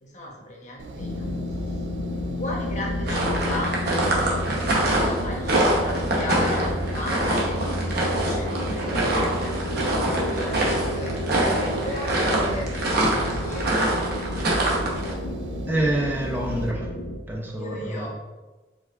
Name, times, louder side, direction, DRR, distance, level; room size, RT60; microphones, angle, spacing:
voice 1, 0.0-1.3 2.4-9.5 10.0-14.0 17.6-18.1, left 1 dB, 40° left, -2 dB, 0.9 m, -36 dB
Engine, 0.8-16.7, right 2 dB, 80° right, 0.4 m, -40 dB
sound 1, 1.0-17.2, left 1 dB, 80° left, 0.6 m, -31 dB
sound 2, 3.1-15.1, right 1 dB, 60° right, 0.9 m, -25 dB
voice 2, 15.7-16.9 17.3-18.1, right 1 dB, 10° right, -2 dB, 0.4 m, -26 dB
4.8 x 3.5 x 2.4 m, 1.2 s
head